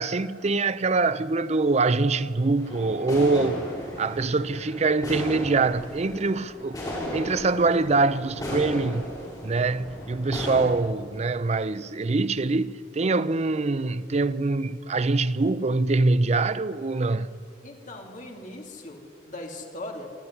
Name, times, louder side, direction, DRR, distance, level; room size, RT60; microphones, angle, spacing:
voice 1, 0.0-3.6 4.0-6.8 7.1-9.1 9.4-17.5, right 3 dB, 35° right, 0.5 m, -24 dB
sound 1, 2.6-10.7, equal, 20° left, 6.3 m, -35 dB
voice 2, 17.6-20.1, left 1 dB, 45° left, 3.1 m, -39 dB
24.5 x 14.0 x 9.6 m
head